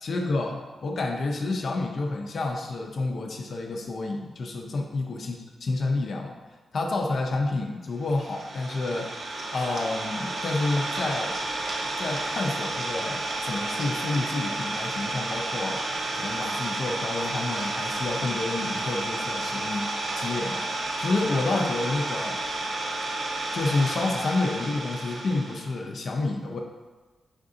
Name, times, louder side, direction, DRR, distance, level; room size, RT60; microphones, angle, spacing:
voice 1, 0.0-6.3 6.7-9.1 9.5-11.4 12.0-20.7 21.0-22.4 23.5-26.6, left 2 dB, 55° left, 2 dB, 0.5 m, -29 dB
Idling, 8.0-25.8, right 2 dB, 55° right, 0.6 m, -31 dB
5.1 x 3.7 x 2.6 m, 1.3 s
wide cardioid pair, 130°, 0 cm